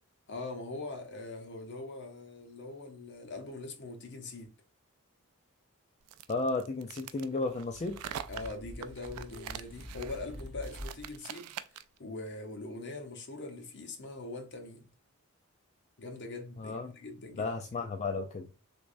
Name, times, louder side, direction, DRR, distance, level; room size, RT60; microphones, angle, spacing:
voice 1, 0.3-4.5 8.3-14.9 16.0-17.5, left 2 dB, 55° left, 0.9 m, -42 dB
sound 1, 6.1-12.0, right 10 dB, 90° right, 0.4 m, -44 dB
voice 2, 6.3-8.0 16.6-16.9 17.4-18.5, left 3 dB, 30° left, 0.3 m, -33 dB
sound 2, 7.6-11.1, equal, ahead, 1.9 m, -46 dB
3.4 x 3.1 x 2.5 m
head